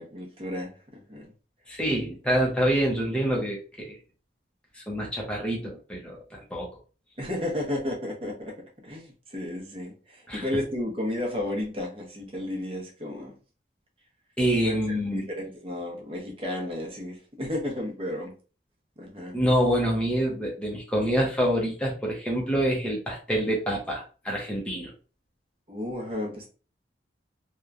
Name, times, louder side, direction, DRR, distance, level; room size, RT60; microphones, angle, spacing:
voice 1, 0.0-1.3 2.0-2.2 7.2-13.4 14.6-18.3 19.0-19.4 25.7-26.5, left 1 dB, 30° right, 0 dB, 0.7 m, -33 dB
voice 2, 1.7-4.0 4.9-6.7 10.3-10.4 14.4-15.3 19.3-24.9, equal, 5° left, -3 dB, 0.6 m, -26 dB
2.9 x 2.1 x 2.3 m, 0.35 s
head